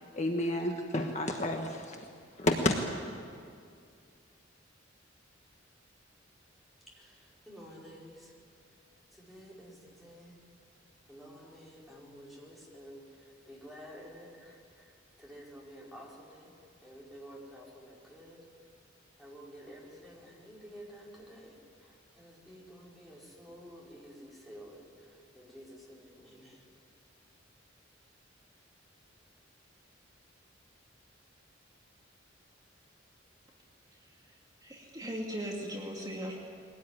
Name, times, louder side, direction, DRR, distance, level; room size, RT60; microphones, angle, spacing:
voice 1, 0.1-2.0 2.4-2.8, left 1 dB, 35° left, 3 dB, 1.5 m, -30 dB
voice 2, 6.9-8.3 9.1-10.4 11.1-14.9 15.2-16.5 16.8-18.4 19.2-26.7, equal, ahead, -5 dB, 5.0 m, -51 dB
voice 3, 34.6-36.4, equal, 20° right, -2 dB, 2.5 m, -38 dB
22.5 x 18.0 x 9.8 m, 2.3 s
head